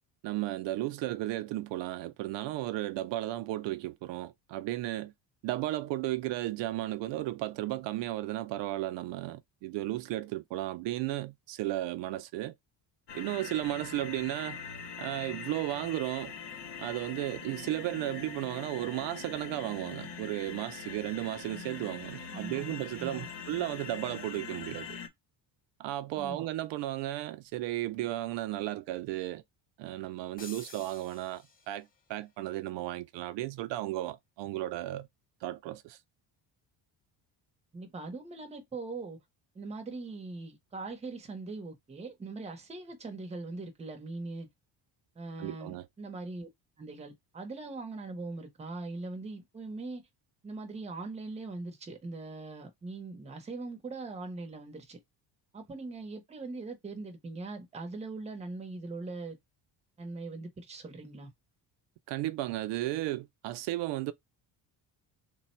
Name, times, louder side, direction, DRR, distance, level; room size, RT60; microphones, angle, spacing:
voice 1, 0.2-5.1 5.4-12.5 13.1-14.6 15.0-16.3 16.8-25.0 25.8-29.4 29.8-35.1 35.4-36.0 45.4-45.9 62.1-64.1, right 15 dB, 85° right, 0.6 m, -34 dB
sound 1, 13.1-25.1, left 6 dB, 70° left, 0.9 m, -43 dB
voice 2, 22.3-23.3 26.2-26.5 37.7-39.2 39.5-44.5 45.2-46.5 46.8-50.1 50.4-55.0 55.5-59.4 60.0-61.3, right 3 dB, 15° right, 0.7 m, -41 dB
sound 2, 30.4-32.0, left 4 dB, 20° left, 0.5 m, -50 dB
3.4 x 2.2 x 4.2 m
cardioid pair, 170°, 42 cm